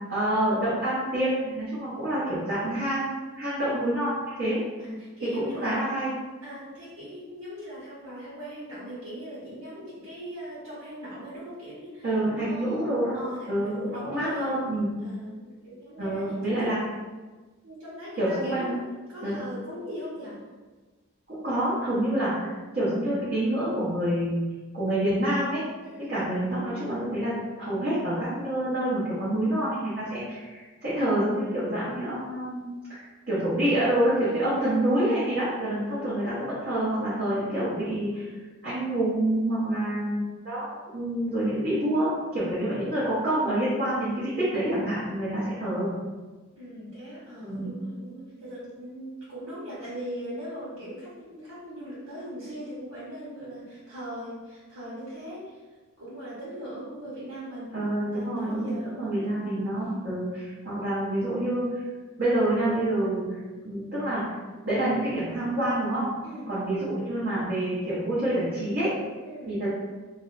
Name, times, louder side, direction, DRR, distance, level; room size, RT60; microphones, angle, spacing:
voice 1, 0.1-4.6 5.3-6.2 12.0-13.2 13.5-14.9 16.0-16.8 18.2-18.7 19.2-19.4 21.3-22.5 22.7-24.4 24.7-25.6 26.1-38.3 38.6-45.9 47.4-47.8 57.7-61.8 62.2-63.2 63.6-64.2 64.6-66.1 66.5-68.9 69.5-69.7, right 1 dB, 45° right, -11 dB, 0.8 m, -27 dB
voice 2, 4.8-5.9 6.4-12.1 12.4-12.8 13.1-14.5 15.0-16.7 17.6-20.4 25.8-26.1 34.3-34.8 46.6-55.4 56.0-57.7 58.1-59.1 66.2-66.5 69.2-69.5, equal, 80° right, -9 dB, 1.1 m, -40 dB
2.5 x 2.1 x 3.8 m, 1.3 s
head